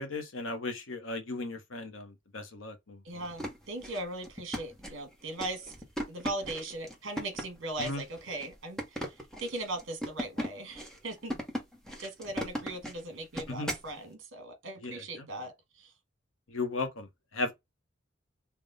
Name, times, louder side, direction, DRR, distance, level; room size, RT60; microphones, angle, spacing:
voice 1, 0.0-3.0 7.8-8.0 13.5-13.7 14.8-15.0 16.5-17.1 17.3-17.5, left 3 dB, 75° left, 0.9 m, -36 dB
voice 2, 3.0-5.7 6.1-11.4 12.0-15.9, right 2 dB, 65° right, 1.5 m, -39 dB
sound 1, 3.2-13.9, equal, 5° left, 0.9 m, -38 dB
3.5 x 2.2 x 3.7 m
head